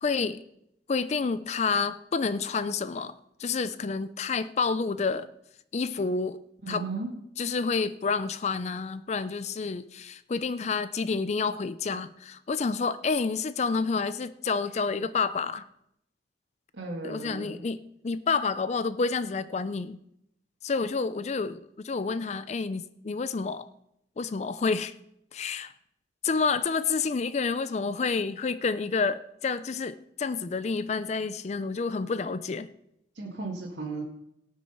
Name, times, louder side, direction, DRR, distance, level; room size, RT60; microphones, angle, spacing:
voice 1, 0.0-0.4 0.9-3.1 3.4-5.3 5.7-6.4 6.7-6.9 7.4-15.6 17.0-20.0 20.6-23.7 24.2-24.9 25.3-25.7 26.2-32.7, left 4 dB, 40° left, 0.4 m, -29 dB
voice 2, 6.6-7.1 16.7-17.6 33.2-34.0, right 3 dB, 85° right, 2.0 m, -35 dB
18.0 x 6.1 x 5.6 m
head